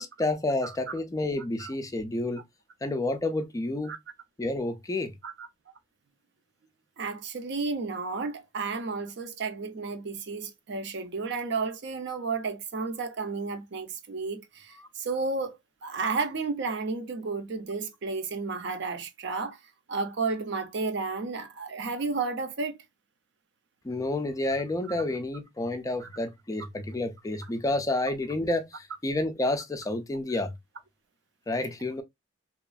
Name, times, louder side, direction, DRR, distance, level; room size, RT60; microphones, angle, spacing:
voice 1, 0.0-2.4 2.8-3.9 4.4-5.1 14.8-14.9 23.8-30.5 31.5-32.0, left 2 dB, 15° left, 0.3 m, -30 dB
voice 2, 7.0-15.5 15.8-19.6 19.9-22.8 26.0-26.1, right 4 dB, 60° right, 0.6 m, -32 dB
2.9 x 2.4 x 2.3 m
head